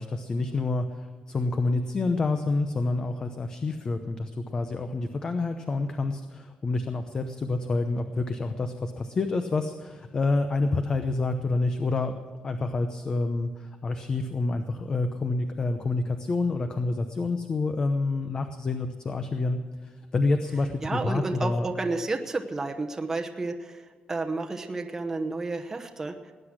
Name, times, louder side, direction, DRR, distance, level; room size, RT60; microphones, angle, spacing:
voice 1, 0.0-12.2 12.4-21.7, left 3 dB, 30° left, 8 dB, 0.7 m, -28 dB
voice 2, 20.8-26.3, right 3 dB, 20° right, 3 dB, 0.9 m, -31 dB
19.0 x 9.9 x 6.2 m, 1.5 s
cardioid pair, 150°, 3 cm